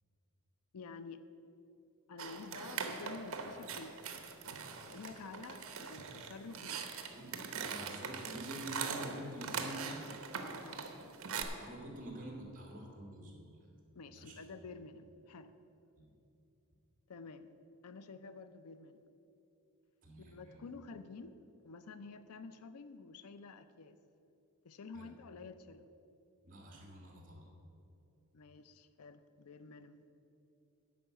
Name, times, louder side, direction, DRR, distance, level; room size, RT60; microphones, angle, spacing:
voice 1, 0.7-1.2 2.1-4.1 4.6-6.8 10.6-10.9 13.9-15.5 17.1-17.5 17.8-19.0 20.2-21.4 21.6-24.0 24.6-25.8 28.3-30.0, left 4 dB, 80° left, 12 dB, 0.5 m, -50 dB
sound 1, 2.2-11.4, right 6 dB, 65° right, 1.0 m, -42 dB
voice 2, 7.1-10.1 11.6-13.6 14.1-14.5 16.0-16.1 20.0-20.6 24.9-25.1 26.4-27.5, right 1 dB, 40° right, -1 dB, 2.3 m, -47 dB
10.0 x 5.4 x 7.8 m, 2.8 s
head